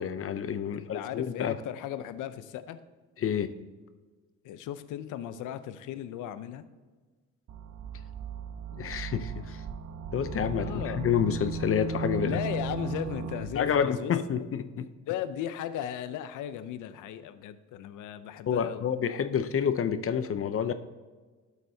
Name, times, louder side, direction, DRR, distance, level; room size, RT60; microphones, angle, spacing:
voice 1, 0.0-1.6 3.2-3.5 8.7-9.6 10.1-12.4 13.5-14.9 18.5-20.7, left 8 dB, 45° left, 11 dB, 0.7 m, -29 dB
voice 2, 0.7-2.8 4.4-6.7 10.5-11.0 12.2-14.5 15.1-18.8, left 10 dB, 90° left, 12 dB, 0.6 m, -36 dB
sound 1, 7.5-13.8, right 5 dB, 65° right, 0.8 m, -36 dB
12.0 x 8.2 x 2.8 m, 1.4 s
cardioid pair, 90°, 30 cm